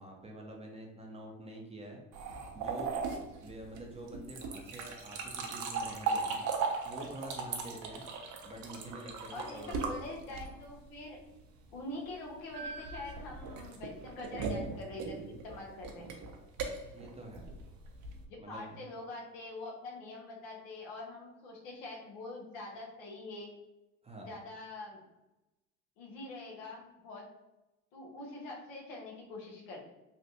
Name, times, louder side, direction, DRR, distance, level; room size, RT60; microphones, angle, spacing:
voice 1, 0.0-2.0 2.5-3.0 3.4-6.5 6.8-8.0 8.4-9.7 16.9-17.5 18.4-18.9 24.0-24.3, right 1 dB, 15° right, 0 dB, 0.7 m, -46 dB
sound 1, 2.1-10.8 12.5-18.2, right 4 dB, 50° right, 0.7 m, -38 dB
voice 2, 9.3-11.2 11.7-16.1 18.4-23.5 24.2-25.0 26.0-27.3 27.9-29.9, left 2 dB, 75° left, -1 dB, 1.1 m, -44 dB
3.2 x 2.5 x 2.7 m, 0.98 s
hypercardioid pair, 75°, 38 cm